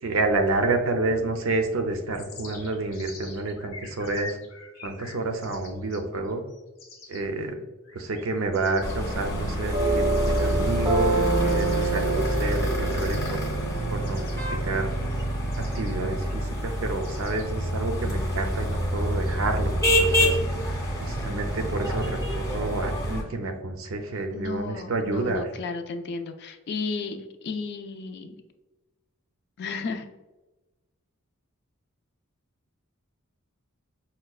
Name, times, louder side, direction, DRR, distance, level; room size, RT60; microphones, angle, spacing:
voice 1, 0.0-4.4 4.8-6.4 7.1-7.6 7.9-13.4 13.9-14.9 15.6-20.4 21.0-25.5, right 2 dB, 70° right, 5 dB, 0.5 m, -29 dB
sound 1, 2.1-7.2 7.8-8.9 9.4-9.7 10.1-10.7 11.5-11.9 12.9-13.3 13.6-15.2 15.5-15.9 17.0-17.5, left 3 dB, 85° left, 0.8 m, -45 dB
sound 2, 8.8-23.2, equal, 15° left, 0.7 m, -27 dB
sound 3, 9.7-14.8, right 4 dB, 20° right, 0.6 m, -28 dB
voice 2, 24.3-28.4 29.6-30.1, left 4 dB, 55° left, 7 dB, 0.4 m, -33 dB
5.5 x 2.2 x 2.3 m, 1.1 s
head